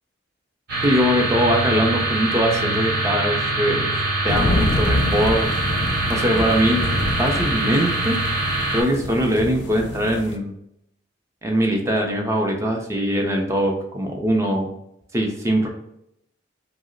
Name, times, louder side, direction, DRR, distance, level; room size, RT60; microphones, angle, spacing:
sound 1, 0.7-8.8, right 2 dB, 55° right, 0.9 m, -24 dB
voice 1, 0.8-3.9 4.2-5.5 6.1-6.8 7.2-8.2 8.7-10.5 11.4-14.7 15.1-15.7, equal, 15° right, 1 dB, 0.4 m, -21 dB
sound 2, 4.3-10.4, left 1 dB, 65° left, 0.4 m, -27 dB
2.7 x 2.0 x 3.7 m, 0.78 s
head